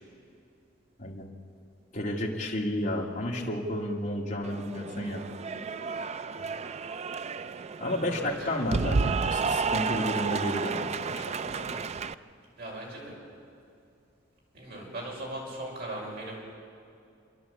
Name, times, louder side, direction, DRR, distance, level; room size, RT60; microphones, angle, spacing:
voice 1, 1.9-5.2 7.8-11.8, left 1 dB, 40° left, -3 dB, 2.2 m, -32 dB
Cheering / Applause, 4.4-12.1, right 5 dB, 35° right, 0.4 m, -31 dB
voice 2, 8.1-8.6 12.6-13.1 14.5-16.4, right 1 dB, 55° right, -3 dB, 5.9 m, -38 dB
28.0 x 11.0 x 8.4 m, 2.5 s
head